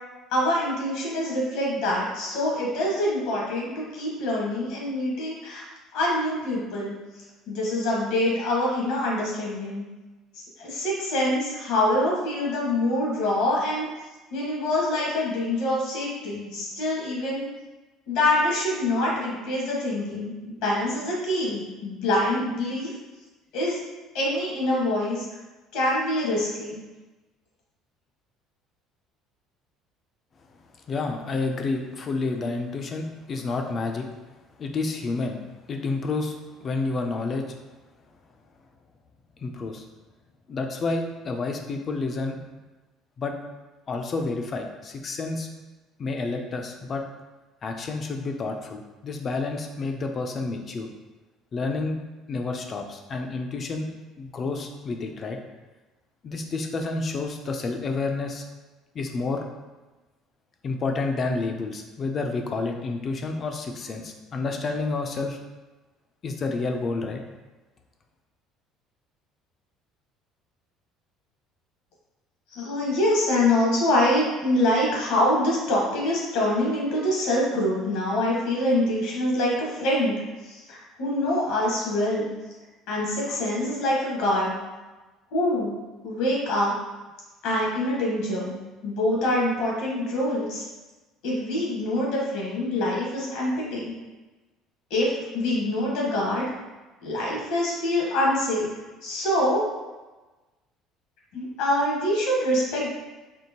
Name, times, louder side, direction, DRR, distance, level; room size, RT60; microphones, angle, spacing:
voice 1, 0.3-5.6 5.9-6.9 7.5-9.8 10.3-13.9 14.3-17.5 18.1-22.9 23.5-23.8 24.1-25.2 25.7-26.8 72.5-80.2 80.4-82.3 82.9-84.5 85.3-85.7 86.0-86.7 87.4-88.5 88.8-90.6 91.2-93.9 94.9-96.5 97.0-98.7 99.0-99.6 101.3-102.9, left 1 dB, 80° left, -3 dB, 1.2 m, -25 dB
voice 2, 30.9-34.1 34.6-35.4 35.7-37.4 39.4-39.8 40.5-42.4 43.2-43.3 43.9-45.5 46.0-47.0 47.6-50.9 51.5-52.0 52.3-53.9 54.2-55.4 56.2-58.5 58.9-59.4 60.6-65.4 66.2-67.2, left 3 dB, 30° left, 4 dB, 0.4 m, -29 dB
4.4 x 2.9 x 2.9 m, 1.2 s
cardioid pair, 155°, 0 cm